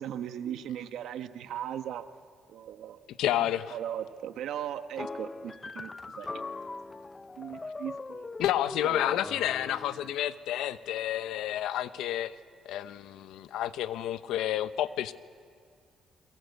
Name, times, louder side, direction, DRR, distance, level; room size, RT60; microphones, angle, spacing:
voice 1, 0.0-2.0 2.5-3.0 3.7-6.4 7.4-8.3 8.8-9.2, right 10 dB, 80° right, 9 dB, 1.2 m, -38 dB
voice 2, 3.2-3.8 8.4-12.4 12.6-15.1, left 12 dB, 90° left, 13 dB, 0.8 m, -30 dB
sound 1, 5.0-10.2, left 3 dB, 25° left, 0.7 m, -41 dB
29.0 x 23.0 x 8.3 m, 2.1 s
cardioid pair, 90°, 0 cm